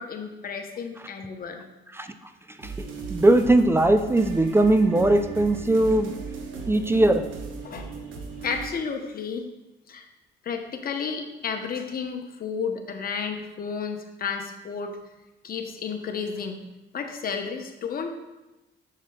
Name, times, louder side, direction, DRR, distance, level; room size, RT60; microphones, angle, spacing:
voice 1, 0.0-1.6 7.6-8.1 8.4-9.4 9.9-10.1 10.4-14.9 15.4-16.6 16.9-18.1, left 6 dB, 50° left, 5 dB, 0.8 m, -32 dB
sound 1, 2.6-8.7, right 4 dB, 80° right, 0.9 m, -37 dB
voice 2, 3.1-6.1 6.7-7.2, right 2 dB, 10° right, 8 dB, 0.3 m, -20 dB
7.0 x 6.5 x 2.2 m, 1.0 s
cardioid pair, 90°, 20 cm